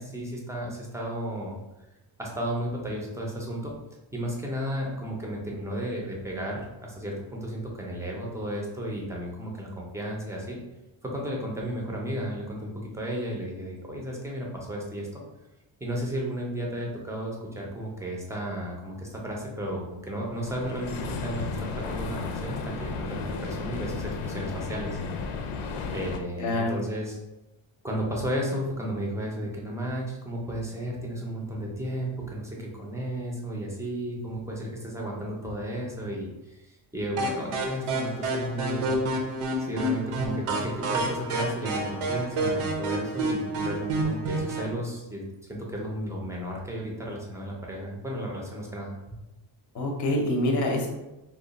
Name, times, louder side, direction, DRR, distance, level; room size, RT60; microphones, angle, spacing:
voice 1, 0.0-1.6 2.2-3.7 4.1-10.6 11.0-15.2 15.8-25.0 25.9-27.2 27.8-39.0 39.6-48.9, right 1 dB, 5° right, -2 dB, 0.4 m, -33 dB
sound 1, 20.2-26.2, left 4 dB, 90° left, 0.6 m, -34 dB
voice 2, 26.4-26.7 49.7-50.9, left 1 dB, 40° left, 1 dB, 0.6 m, -25 dB
sound 2, 37.2-44.7, right 1 dB, 85° right, 0.8 m, -29 dB
3.0 x 2.1 x 3.9 m, 0.99 s
cardioid pair, 160°, 49 cm